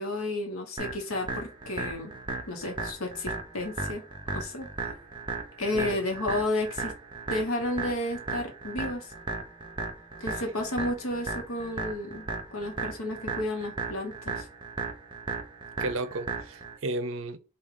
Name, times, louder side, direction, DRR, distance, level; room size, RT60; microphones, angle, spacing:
voice 1, 0.0-2.1 2.5-4.0 4.3-5.0 5.6-6.9 7.3-9.1 10.2-14.5, left 1 dB, 85° left, 1.0 m, -32 dB
sound 1, 0.8-16.8, right 3 dB, 20° right, 0.7 m, -36 dB
voice 2, 15.8-17.4, right 2 dB, 65° right, 0.5 m, -33 dB
4.8 x 2.4 x 3.7 m
head